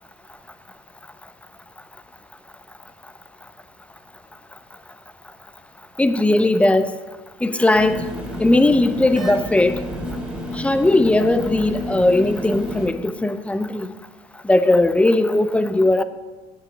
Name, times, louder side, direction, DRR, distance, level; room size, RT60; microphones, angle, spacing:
voice 1, 6.0-7.0 7.4-8.1 8.4-9.8 10.5-13.9 14.4-16.0, left 2 dB, 10° left, 0.6 m, -18 dB
sound 1, 7.7-12.9, left 1 dB, 10° right, 2.9 m, -30 dB
9.4 x 7.2 x 7.7 m
cardioid pair, 130°, 15 cm